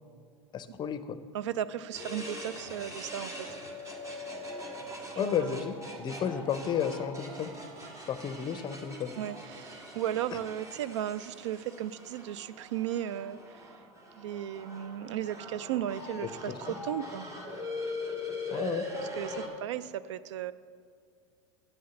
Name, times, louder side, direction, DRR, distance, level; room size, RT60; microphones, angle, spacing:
voice 1, 0.5-1.2 5.2-7.5 8.1-9.1 16.2-16.7 18.5-18.9, left 8 dB, 30° left, 12 dB, 0.6 m, -33 dB
voice 2, 1.3-3.5 5.1-5.7 6.1-6.2 9.2-13.4 14.1-16.5 16.8-17.3 19.2-20.5, right 11 dB, 80° right, 16 dB, 0.4 m, -35 dB
sound 1, 1.9-19.5, left 1 dB, 20° right, 1.6 m, -41 dB
9.1 x 6.4 x 7.0 m, 2.2 s
hypercardioid pair, 105°, 15 cm